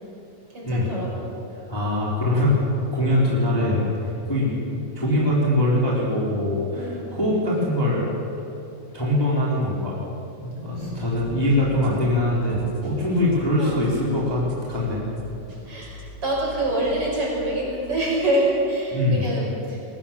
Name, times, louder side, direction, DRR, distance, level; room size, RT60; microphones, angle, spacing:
voice 1, 0.5-1.3 3.1-3.3 6.7-6.9 10.7-10.9 13.5-13.9 15.7-19.8, right 1 dB, 40° right, -4 dB, 6.9 m, -26 dB
voice 2, 1.7-2.6 2.9-8.1 8.9-9.9 10.4-14.4 14.7-15.0 18.9-19.2, left 1 dB, 5° left, -5 dB, 3.5 m, -22 dB
sound 1, 10.7-18.0, left 2 dB, 85° right, 7.5 m, -42 dB
22.0 x 18.5 x 7.2 m, 2.9 s
omnidirectional pair, 3.9 m